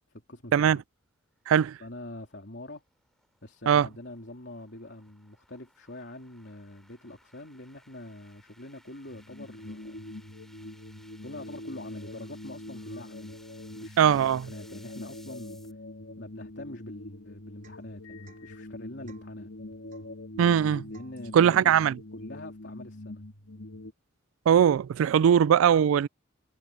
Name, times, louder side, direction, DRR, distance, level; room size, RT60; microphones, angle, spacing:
voice 1, 0.1-0.8 1.8-2.8 3.4-10.1 11.2-13.4 13.7-15.6 16.1-19.5 20.9-21.7 22.1-23.3, left 1 dB, 60° left, 3.7 m, -44 dB
voice 2, 1.5-1.8 3.7-3.9 14.0-14.4 20.4-20.9 21.3-22.0 24.5-26.1, right 8 dB, 85° right, 0.3 m, -20 dB
sound 1, 1.8-15.7, left 1 dB, ahead, 4.8 m, -60 dB
sound 2, 9.1-23.9, left 1 dB, 80° left, 2.2 m, -44 dB
Domestic sounds home sounds / Chink clink / Drip, 17.6-17.9 18.2-18.5 19.1-19.4 19.9-20.2 20.9-21.2, right 6 dB, 40° right, 4.3 m, -59 dB
head